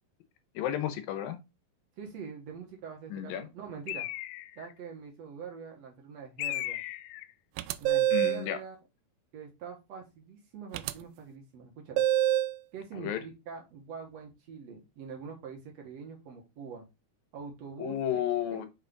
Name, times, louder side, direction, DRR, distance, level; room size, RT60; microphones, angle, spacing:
voice 1, 0.5-1.4 3.1-3.5 8.1-8.6 12.9-13.2 17.8-18.7, left 10 dB, 75° left, 2.5 m, -32 dB
voice 2, 2.0-4.1 4.6-6.8 7.8-8.8 9.3-12.0 12.7-16.9 17.3-18.2 18.5-18.7, right 6 dB, 55° right, 2.1 m, -44 dB
Bird, 3.9-4.7 6.4-7.3, left 16 dB, 90° left, 2.5 m, -36 dB
sound 1, 7.6-8.5 10.7-10.9 12.0-12.6, right 12 dB, 85° right, 2.5 m, -26 dB
6.4 x 4.8 x 3.9 m
omnidirectional pair, 4.5 m